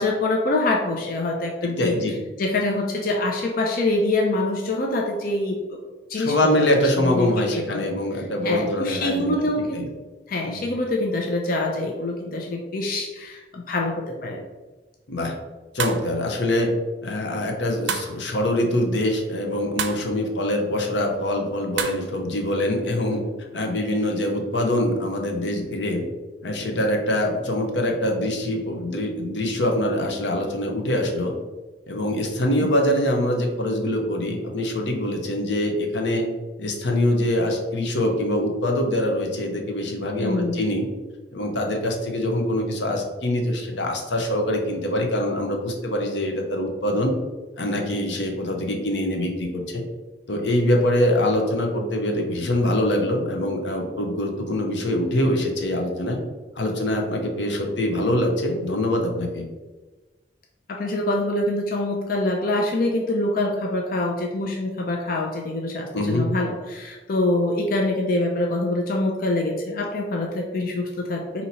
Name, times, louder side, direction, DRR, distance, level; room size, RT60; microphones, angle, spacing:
voice 1, 0.0-1.9 2.4-5.8 6.1-6.7 7.0-7.9 8.4-9.8 10.3-14.4 40.2-40.6 60.7-71.5, left 2 dB, 55° left, 1 dB, 0.5 m, -25 dB
voice 2, 1.6-2.2 6.1-9.5 9.7-9.9 10.5-10.7 15.1-15.3 15.7-16.7 17.0-23.2 23.5-26.0 26.4-31.3 31.9-36.3 36.6-40.9 41.3-47.1 47.6-49.8 50.3-56.2 56.6-59.5 65.9-66.3, left 1 dB, 90° left, 2 dB, 0.8 m, -24 dB
sound 1, 15.8-16.1 17.9-18.2 19.8-20.0 21.8-22.0, right 7 dB, 90° right, 0.4 m, -28 dB
4.0 x 2.8 x 4.2 m, 1.2 s
head